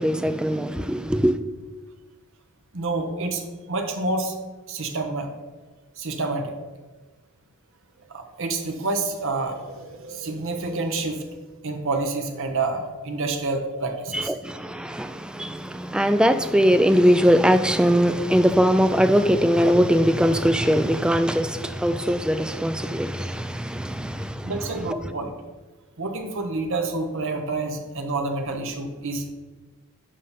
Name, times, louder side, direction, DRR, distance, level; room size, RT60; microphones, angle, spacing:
voice 1, 0.0-1.4 14.1-24.5, equal, 5° right, 0.3 m, -21 dB
voice 2, 2.7-3.4 3.7-4.3 4.7-5.3 6.0-6.5 8.1-11.3 11.6-14.3 24.1-24.2 24.4-25.3 26.0-29.2, right 3 dB, 65° right, 1.0 m, -28 dB
6.6 x 5.2 x 5.7 m
head